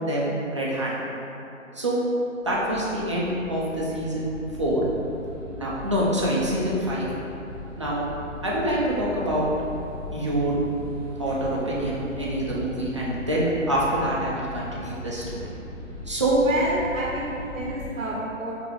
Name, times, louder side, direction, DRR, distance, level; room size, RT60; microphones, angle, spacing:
voice 1, 0.0-1.0 1.7-2.0 2.4-4.3 4.6-4.8 5.5-7.1 7.8-8.0 8.4-9.5 10.1-10.6 11.2-15.4 16.1-16.4, right 1 dB, 25° right, -6 dB, 0.4 m, -26 dB
sound 1, 2.4-18.0, left 2 dB, 15° left, 1.2 m, -39 dB
voice 2, 16.4-18.6, right 1 dB, 80° right, -3 dB, 0.7 m, -29 dB
5.2 x 2.9 x 3.0 m, 2.9 s
figure-of-eight pair, 140°, 40 cm